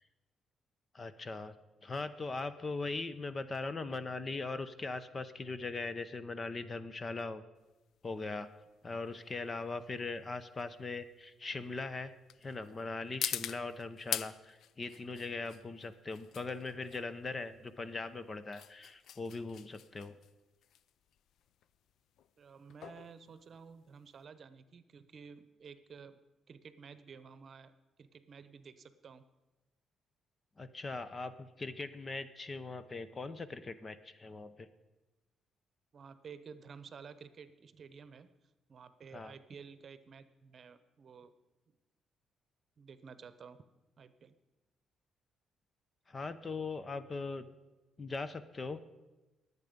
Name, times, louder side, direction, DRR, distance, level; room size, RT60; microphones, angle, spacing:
voice 1, 0.9-1.6 1.8-7.4 8.0-8.5 8.8-12.1 12.4-20.2 30.6-34.7 39.1-39.3 46.1-47.5 48.0-48.8, left 3 dB, 30° left, 13 dB, 0.8 m, -40 dB
sound 1, 7.6-24.2, left 10 dB, 75° left, 0.5 m, -45 dB
voice 2, 22.4-26.2 26.5-27.7 28.0-29.2 35.9-38.3 38.7-41.3 42.8-43.6 44.0-44.3, right 6 dB, 50° right, 13 dB, 0.9 m, -52 dB
21.5 x 8.2 x 5.3 m, 1.1 s
cardioid pair, 90°, 0 cm